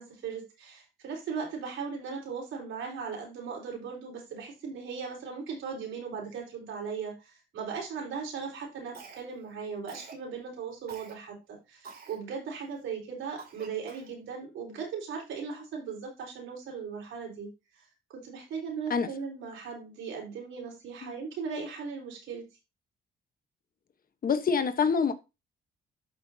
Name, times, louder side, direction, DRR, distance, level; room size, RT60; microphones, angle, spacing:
voice 1, 0.0-17.5 18.1-22.5, right 5 dB, 80° right, 4.3 m, -38 dB
Cough, 8.9-9.5 9.9-10.2 10.9-11.1 11.8-12.2 12.7-12.8 13.4-14.2, right 5 dB, 50° right, 2.7 m, -47 dB
voice 2, 24.2-25.1, left 6 dB, 45° left, 1.2 m, -26 dB
12.0 x 5.7 x 2.8 m
cardioid pair, 90°, 20 cm